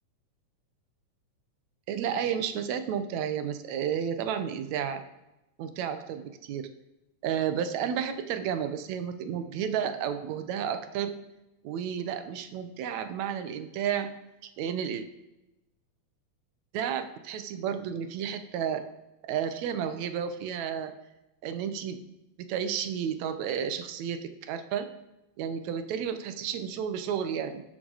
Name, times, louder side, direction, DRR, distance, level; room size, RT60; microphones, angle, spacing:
voice 1, 1.9-5.0 5.6-6.7 7.2-11.1 11.6-14.1 14.4-15.0 16.7-18.8 19.2-20.9 21.4-22.0 22.5-24.9 25.4-27.6, right 8 dB, 75° right, 9 dB, 1.9 m, -32 dB
18.5 x 6.2 x 4.0 m, 0.96 s
omnidirectional pair, 3.7 m